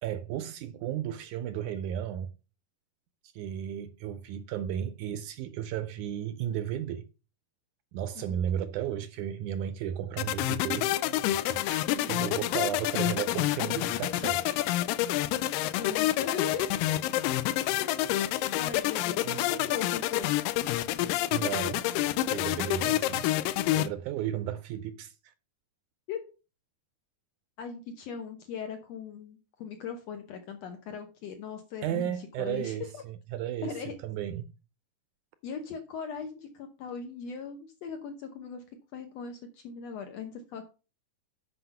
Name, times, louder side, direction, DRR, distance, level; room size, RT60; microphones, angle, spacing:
voice 1, 0.0-2.3 3.3-7.1 7.9-11.0 11.3-14.6 19.2-19.4 21.3-21.9 22.3-23.3 23.7-25.3 31.8-34.5, right 10 dB, 80° right, 1.9 m, -34 dB
sound 1, 10.2-23.9, left 14 dB, 85° left, 2.3 m, -28 dB
voice 2, 11.9-12.3 15.8-16.9 17.8-18.0 18.6-20.3 26.1-26.2 27.6-32.1 32.4-33.0 33.6-33.9 35.4-38.6 38.9-40.7, left 6 dB, 65° left, 1.8 m, -39 dB
7.9 x 5.7 x 5.5 m
omnidirectional pair, 3.9 m